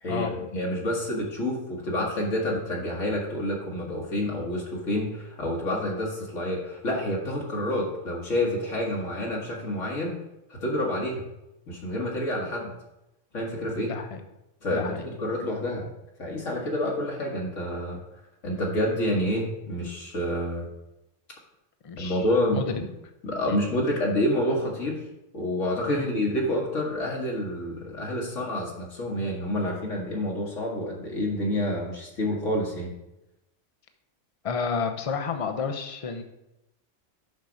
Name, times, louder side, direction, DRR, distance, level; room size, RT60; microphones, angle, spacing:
voice 1, 0.0-10.1 10.5-11.2 11.7-12.7 13.3-13.9 14.6-15.9 16.2-18.0 18.4-20.7 22.0-22.9 23.2-25.0 25.3-32.9, left 1 dB, 75° left, -1 dB, 1.8 m, -28 dB
voice 2, 13.8-14.2 14.7-15.0 21.8-22.2 22.5-22.7 23.5-23.6 25.9-26.1 34.4-36.2, left 5 dB, 35° left, 6 dB, 0.6 m, -30 dB
6.6 x 5.7 x 5.1 m, 0.92 s
omnidirectional pair, 1.3 m